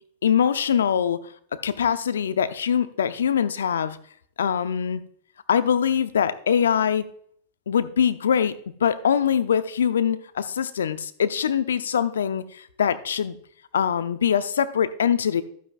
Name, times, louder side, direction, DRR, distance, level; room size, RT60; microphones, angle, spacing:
voice 1, 0.2-1.2 1.6-4.0 4.4-5.0 5.5-7.0 7.7-8.6 8.8-13.4 13.7-15.4, left 8 dB, 75° left, 12 dB, 0.6 m, -23 dB
11.5 x 9.2 x 2.5 m, 0.62 s
hypercardioid pair, 95°, 0 cm